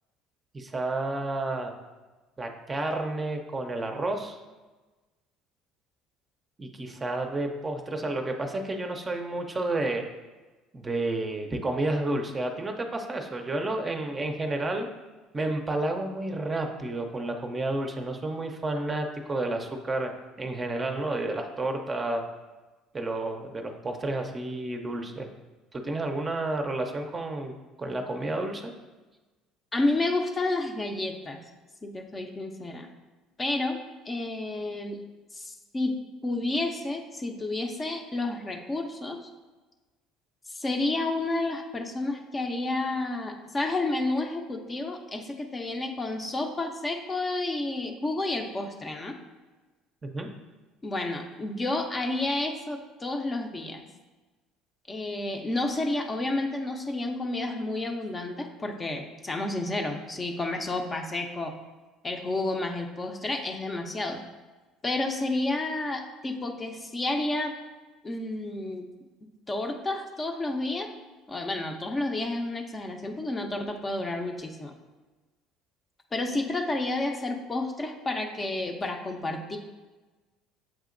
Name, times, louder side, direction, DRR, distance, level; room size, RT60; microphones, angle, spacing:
voice 1, 0.5-1.7 2.4-4.4 6.6-10.0 10.7-14.9 15.3-20.1 20.4-22.2 22.9-25.3 25.7-27.5 27.8-28.6 50.0-50.3, right 2 dB, 25° right, 4 dB, 0.5 m, -30 dB
voice 2, 29.7-31.4 31.8-32.9 33.4-33.8 34.1-35.0 35.3-39.2 40.5-49.2 50.8-53.8 54.9-61.5 62.0-64.2 64.8-67.5 68.0-68.9 69.5-70.9 71.3-74.7 76.1-79.6, left 2 dB, 25° left, 4 dB, 0.6 m, -30 dB
7.3 x 2.8 x 2.5 m, 1.2 s
hypercardioid pair, 75°, 0 cm